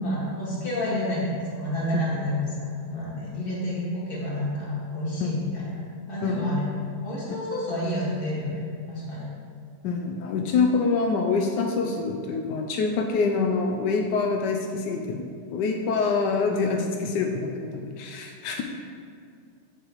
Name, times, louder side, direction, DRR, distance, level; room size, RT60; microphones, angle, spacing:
voice 1, 0.0-4.7 4.9-5.8 6.1-9.3 16.0-16.1, left 1 dB, 30° left, -7 dB, 2.0 m, -30 dB
voice 2, 9.8-18.6, left 4 dB, 85° left, 2 dB, 1.2 m, -26 dB
7.8 x 6.8 x 3.1 m, 2.3 s
omnidirectional pair, 1.8 m